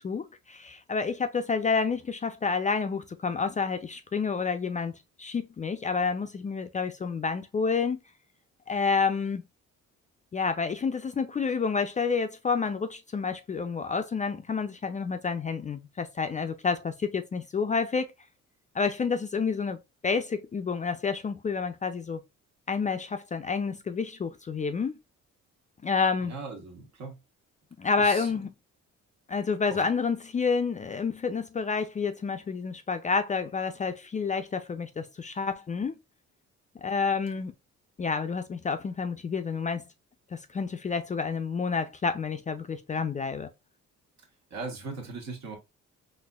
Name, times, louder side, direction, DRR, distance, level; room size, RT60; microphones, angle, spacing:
voice 1, 0.0-8.0 8.7-9.4 10.3-18.1 18.7-19.8 20.0-22.2 22.7-24.9 25.8-26.3 27.8-28.5 29.3-36.0 36.8-37.5 38.0-39.8 40.3-43.5, left 5 dB, 25° left, 0.3 m, -29 dB
voice 2, 26.2-27.2 28.0-28.3 29.7-29.8 44.5-45.6, right 3 dB, 65° right, 1.4 m, -39 dB
4.1 x 2.6 x 2.3 m
cardioid pair, 90°, 30 cm